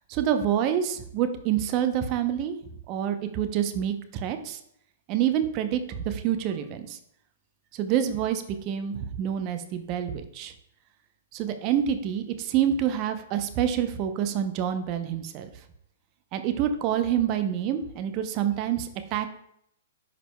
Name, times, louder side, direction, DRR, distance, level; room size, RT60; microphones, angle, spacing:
voice 1, 0.1-2.5 2.9-4.6 5.1-7.0 7.7-10.5 11.3-15.5 16.3-19.3, right 9 dB, 40° right, 8 dB, 0.7 m, -27 dB
10.0 x 5.0 x 2.2 m, 0.72 s
hypercardioid pair, 120°, 0 cm